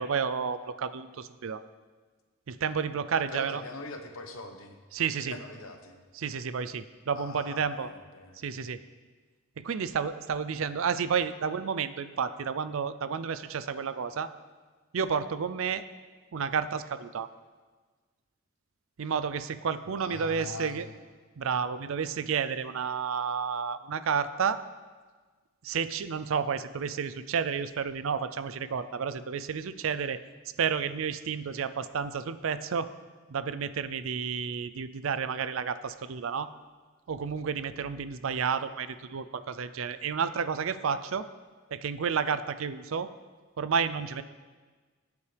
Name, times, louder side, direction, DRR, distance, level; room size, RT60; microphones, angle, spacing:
voice 1, 0.0-1.6 2.5-3.6 4.9-5.3 6.1-7.9 8.4-8.8 9.6-14.3 14.9-15.8 16.3-17.3 19.0-20.9 21.4-24.6 25.6-30.2 30.6-32.9 33.3-36.5 37.1-41.3 41.7-43.1 43.6-44.2, right 6 dB, 70° right, 14 dB, 0.4 m, -31 dB
voice 2, 3.3-4.8 5.2-6.0 7.1-8.7 19.8-20.9, left 3 dB, 80° left, 5 dB, 1.1 m, -42 dB
14.0 x 8.4 x 3.4 m, 1.4 s
head